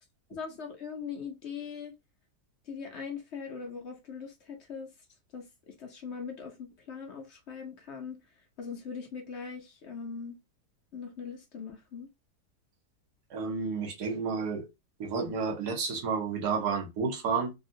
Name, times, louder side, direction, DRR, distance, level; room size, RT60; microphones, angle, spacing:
voice 1, 0.3-1.9 2.6-4.9 5.3-8.2 8.6-10.4 10.9-12.1, left 6 dB, 60° left, 0.8 m, -41 dB
voice 2, 13.3-14.6 15.0-17.5, right 5 dB, 80° right, 1.5 m, -31 dB
3.4 x 2.3 x 2.6 m
omnidirectional pair, 1.7 m